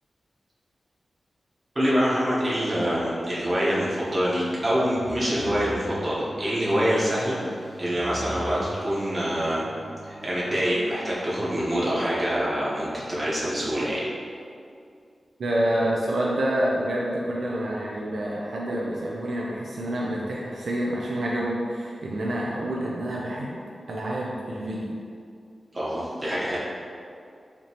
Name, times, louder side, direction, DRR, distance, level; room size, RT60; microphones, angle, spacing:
voice 1, 1.7-7.4 7.8-9.6 10.0-14.0 25.7-26.6, equal, 30° right, -8 dB, 1.0 m, -25 dB
sound 1, 3.7-11.1, equal, 80° left, 1.0 m, -42 dB
voice 2, 15.4-23.6 23.9-24.9, right 1 dB, 75° right, -4 dB, 0.4 m, -28 dB
5.0 x 2.9 x 2.9 m, 2.3 s
wide cardioid pair, 130°, 0 cm